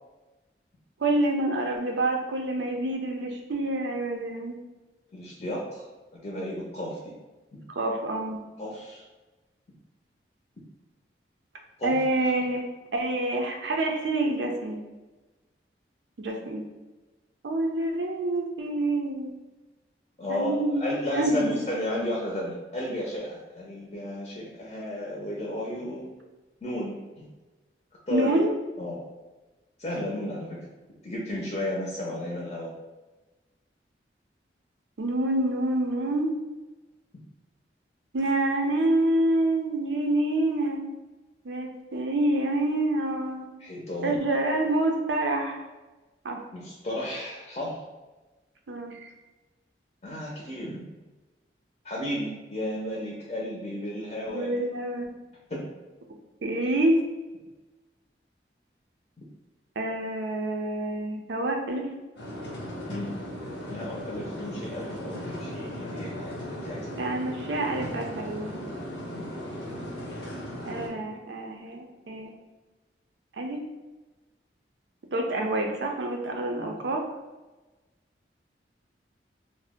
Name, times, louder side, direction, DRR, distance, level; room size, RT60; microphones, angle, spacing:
voice 1, 1.0-4.6 7.7-8.4 11.8-12.6 12.9-14.8 16.2-16.6 17.4-19.3 20.3-21.5 28.1-28.6 35.0-36.4 38.1-40.8 41.4-43.5 44.0-45.6 46.2-46.4 48.7-49.1 54.2-55.1 56.4-57.0 59.8-61.9 67.0-68.6 70.7-72.3 73.4-73.6 75.1-77.0, right 1 dB, 85° right, 3 dB, 0.5 m, -27 dB
voice 2, 5.1-5.9 6.1-7.1 8.6-9.0 11.8-12.0 20.2-26.1 26.6-27.3 28.1-28.4 28.8-29.0 29.8-30.7 31.0-32.7 43.6-44.2 46.5-47.8 50.0-50.8 51.8-54.5 55.5-55.6 62.9-63.1 63.7-66.9 69.1-69.2 76.6-76.7, left 1 dB, 35° left, -4 dB, 0.5 m, -33 dB
sound 1, 62.2-70.9, equal, 85° left, 0.8 m, -37 dB
2.7 x 2.0 x 3.4 m, 1.2 s
head